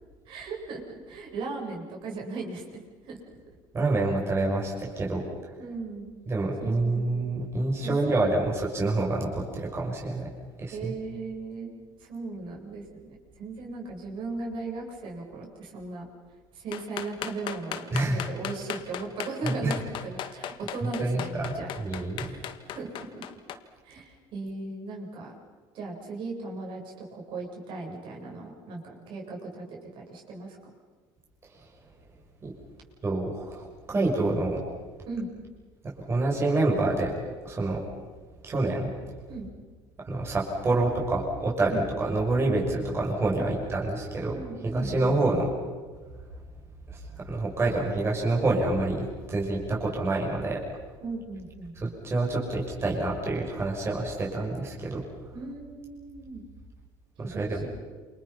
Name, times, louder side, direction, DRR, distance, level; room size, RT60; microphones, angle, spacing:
voice 1, 0.3-0.8 1.1-3.2 5.6-6.1 6.6-7.0 7.8-8.5 10.7-11.7 12.0-16.1 16.5-21.7 22.2-22.4 22.7-23.2 23.8-25.3 25.7-30.6 35.1-35.3 39.3-39.5 41.7-41.8 43.3-45.2 51.0-51.7 55.3-56.4 57.2-57.7, right 3 dB, 60° right, -1 dB, 7.8 m, -37 dB
voice 2, 3.7-5.2 6.3-10.3 10.6-10.9 17.9-18.2 19.4-19.8 21.0-22.3 32.4-32.5 33.0-34.6 36.1-37.1 37.4-37.8 38.4-38.9 40.0-45.5 46.9-50.6 51.8-55.0 57.2-57.7, right 2 dB, 25° right, -2 dB, 6.5 m, -27 dB
sound 1, 16.7-23.6, left 10 dB, 60° left, 1.8 m, -36 dB
29.0 x 27.5 x 5.9 m, 1.5 s
cardioid pair, 130°, 10 cm